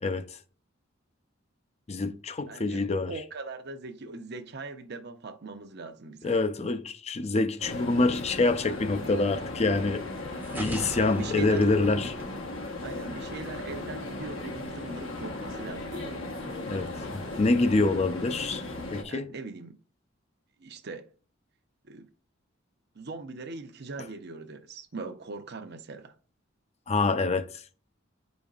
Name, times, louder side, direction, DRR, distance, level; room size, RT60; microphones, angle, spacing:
voice 1, 1.9-3.1 6.2-10.0 10.5-12.2 16.7-18.6 18.9-19.3 26.9-27.6, left 3 dB, 35° left, 0.5 m, -26 dB
voice 2, 2.5-6.3 10.8-11.6 12.8-16.4 19.1-19.8 20.6-21.1 21.8-22.1 22.9-26.2, right 3 dB, 55° right, 0.8 m, -41 dB
sound 1, 7.6-19.0, left 2 dB, 85° left, 1.2 m, -37 dB
sound 2, 10.4-13.3, right 1 dB, 10° right, 0.7 m, -40 dB
8.4 x 5.2 x 2.4 m
head